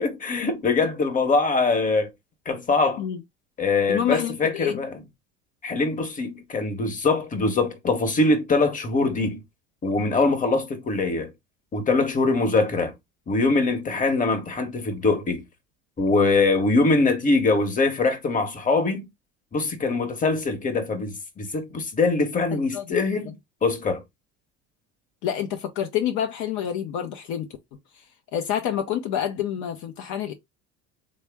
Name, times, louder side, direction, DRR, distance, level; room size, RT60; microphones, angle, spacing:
voice 1, 0.0-2.1 2.5-3.0 3.6-4.9 5.6-9.4 9.8-11.3 11.7-12.9 13.3-15.4 16.0-19.1 19.5-23.3 23.6-24.0, left 3 dB, 25° left, 1.1 m, -23 dB
voice 2, 3.9-4.8 22.5-22.9 25.2-27.5 28.3-30.3, left 10 dB, 65° left, 0.6 m, -28 dB
3.3 x 2.1 x 3.3 m
supercardioid pair, 85°, 31 cm